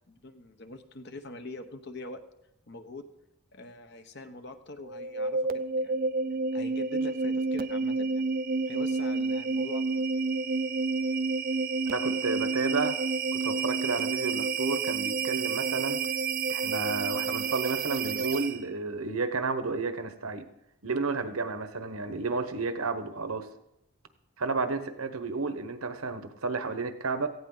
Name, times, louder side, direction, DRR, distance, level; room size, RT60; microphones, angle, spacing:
voice 1, 0.1-2.2 2.7-3.0 3.5-5.4 5.7-6.0 6.5-8.2 8.7-9.8, left 2 dB, 50° left, 8 dB, 1.1 m, -43 dB
sound 1, 4.8-18.7, right 4 dB, 40° right, 0.5 m, -29 dB
voice 2, 11.9-12.9 13.3-16.0 16.5-20.5 20.8-23.5 24.4-27.3, right 3 dB, 85° right, 9 dB, 1.2 m, -32 dB
17.5 x 15.0 x 4.0 m, 0.84 s
head